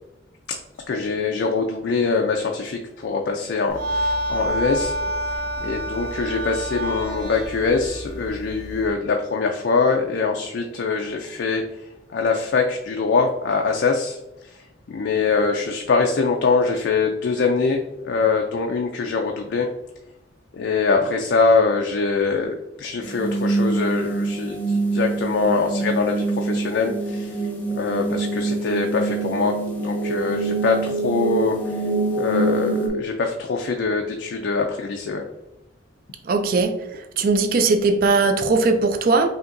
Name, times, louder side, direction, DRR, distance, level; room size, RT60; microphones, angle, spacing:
voice 1, 0.9-5.0 5.6-11.6 12.1-14.6 14.9-19.7 20.5-27.4 27.7-31.6 32.1-35.3, left 4 dB, 65° left, 2 dB, 0.4 m, -23 dB
sound 1, 3.7-8.9, right 1 dB, 80° right, 1.4 m, -28 dB
sound 2, 23.0-32.9, right 3 dB, 10° left, 0.7 m, -25 dB
voice 2, 36.3-36.7 37.2-39.3, right 3 dB, 50° right, 7 dB, 0.4 m, -19 dB
5.1 x 2.8 x 2.5 m, 0.96 s
head